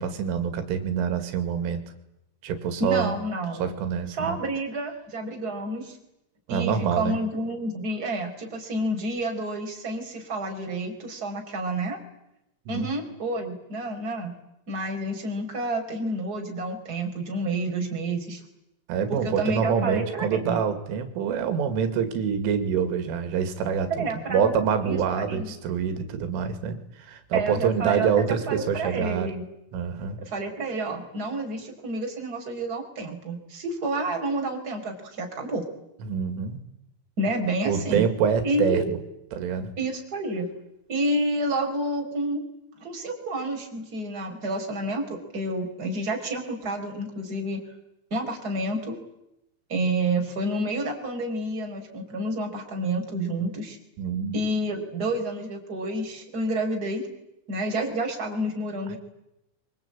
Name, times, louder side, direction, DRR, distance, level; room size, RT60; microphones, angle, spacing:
voice 1, 0.0-1.8 2.4-3.1 3.6-4.4 6.5-7.2 12.7-12.9 18.9-29.3 29.7-30.2 36.0-36.6 37.6-39.0 39.3-39.7 54.0-54.4, right 7 dB, 90° right, 9 dB, 4.7 m, -26 dB
voice 2, 2.8-3.6 4.1-6.0 6.5-12.0 12.7-14.3 14.7-18.4 19.1-20.6 23.9-24.5 24.8-25.5 27.3-29.4 30.2-35.6 37.2-38.0 38.4-38.8 39.8-40.5 40.9-42.4 42.8-47.6 48.1-49.0 49.7-53.8 54.3-57.1 57.5-59.0, right 1 dB, 20° right, 2 dB, 4.3 m, -29 dB
24.5 x 24.0 x 8.8 m, 0.87 s
omnidirectional pair, 5.6 m